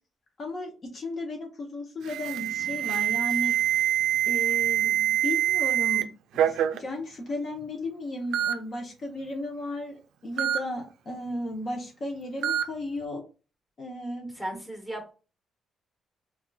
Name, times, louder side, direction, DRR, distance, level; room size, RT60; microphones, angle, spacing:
voice 1, 0.4-3.5 4.3-13.2 13.8-14.6, left 1 dB, 45° left, 2 dB, 0.7 m, -35 dB
Alarm, 2.1-6.0 6.4-6.8 7.6-7.7 8.3-8.5 10.4-10.6 12.4-12.6, right 11 dB, 80° right, 0.3 m, -25 dB
voice 2, 14.3-15.1, right 1 dB, 5° left, 2 dB, 1.1 m, -36 dB
3.6 x 2.4 x 2.2 m, 0.34 s
cardioid pair, 90°, 0 cm